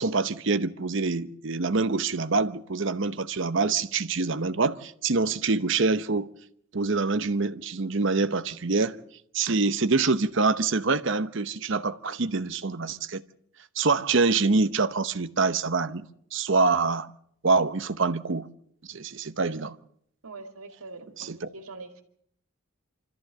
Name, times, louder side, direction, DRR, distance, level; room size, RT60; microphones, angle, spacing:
voice 1, 0.0-6.3 6.7-9.0 9.3-13.2 13.8-17.1 17.4-18.5 18.9-19.7 21.2-21.5, right 4 dB, 55° right, 0.8 m, -25 dB
voice 2, 20.2-21.3 21.5-22.0, right 3 dB, 85° right, 2.3 m, -43 dB
25.5 x 14.0 x 7.5 m
head